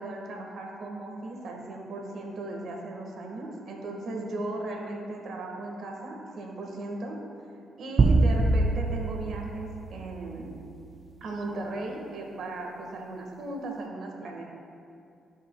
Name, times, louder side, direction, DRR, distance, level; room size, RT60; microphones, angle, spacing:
voice 1, 0.0-7.2 7.8-10.6 11.2-14.4, right 2 dB, 65° right, 1 dB, 1.6 m, -36 dB
sound 1, 8.0-10.6, right 3 dB, 40° right, 0.5 m, -24 dB
16.5 x 5.6 x 2.3 m, 2.5 s
cardioid pair, 70°, 0 cm